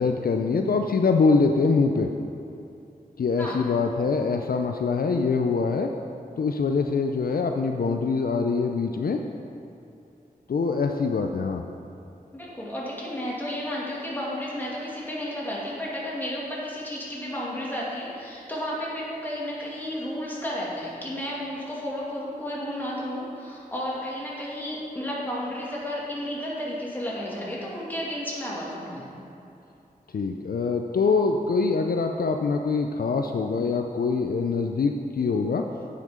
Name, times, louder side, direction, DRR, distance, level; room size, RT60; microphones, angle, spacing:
voice 1, 0.0-2.1 3.2-5.9 6.4-9.2 10.5-11.6 30.1-35.7, left 4 dB, 70° left, 4 dB, 0.4 m, -24 dB
voice 2, 12.3-29.0, equal, 10° left, -6 dB, 2.3 m, -32 dB
9.3 x 5.8 x 5.0 m, 2.7 s
wide cardioid pair, 85°, 16 cm